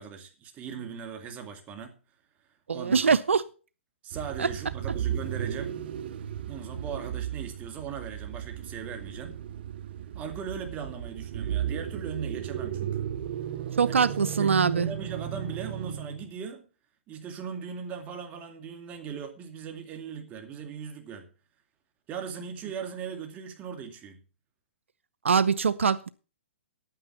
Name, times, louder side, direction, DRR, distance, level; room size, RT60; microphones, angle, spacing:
voice 1, 0.0-2.0 2.7-3.2 4.0-5.8 6.5-9.4 10.1-13.1 13.8-16.6 17.1-21.3 22.1-24.2, right 6 dB, 25° right, 2.2 m, -39 dB
voice 2, 2.7-3.4 4.4-4.5 13.8-14.9 25.2-26.1, right 6 dB, 85° right, 0.6 m, -23 dB
sound 1, 4.1-16.3, right 10 dB, 55° right, 0.8 m, -35 dB
9.7 x 9.1 x 5.8 m
hypercardioid pair, 135°, 7 cm